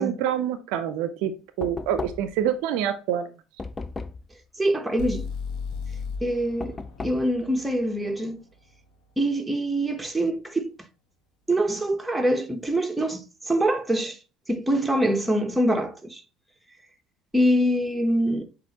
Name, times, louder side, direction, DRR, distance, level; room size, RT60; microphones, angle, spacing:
voice 1, 0.0-1.3 1.6-3.3, right 10 dB, 70° right, 0.4 m, -26 dB
Knock, 1.6-2.5 3.6-4.3 6.6-7.3, left 3 dB, 25° left, 0.3 m, -35 dB
voice 2, 4.6-5.3 6.2-8.4 9.2-10.7 11.5-14.2 14.5-16.2 17.3-18.4, right 1 dB, 10° right, 0.8 m, -24 dB
sound 1, 5.0-8.9, left 5 dB, 70° left, 1.1 m, -36 dB
7.2 x 2.5 x 2.8 m
hypercardioid pair, 75°, 0 cm